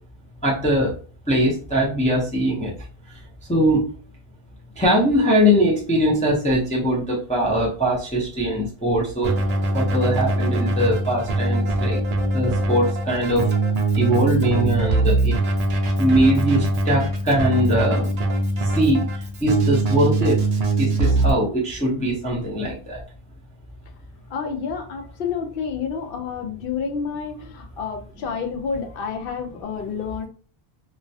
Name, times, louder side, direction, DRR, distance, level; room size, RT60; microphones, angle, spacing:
voice 1, 0.4-0.9 1.3-2.7 3.5-3.9 4.8-9.3 9.7-12.0 12.3-13.5 14.0-15.4 16.0-18.1 18.6-20.4 20.8-23.0, equal, 10° left, -5 dB, 0.4 m, -21 dB
Keyboard (musical), 9.2-21.3, right 2 dB, 55° right, 0.5 m, -22 dB
voice 2, 24.3-30.3, left 6 dB, 70° left, 4 dB, 0.7 m, -29 dB
2.2 x 2.1 x 2.6 m, 0.41 s
omnidirectional pair, 1.0 m